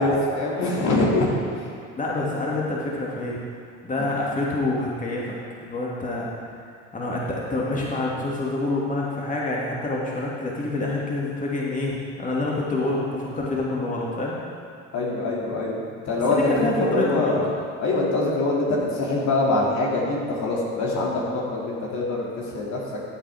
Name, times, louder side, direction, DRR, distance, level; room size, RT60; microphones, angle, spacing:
voice 1, 0.0-1.3 14.9-17.5 17.8-22.8, left 2 dB, 50° left, -4 dB, 2.6 m, -24 dB
voice 2, 2.0-3.4 3.8-5.4 5.6-6.3 6.9-14.4 16.3-17.4, left 2 dB, 20° left, -4 dB, 2.4 m, -27 dB
14.5 x 8.1 x 3.6 m, 2.3 s
hypercardioid pair, 60°, 36 cm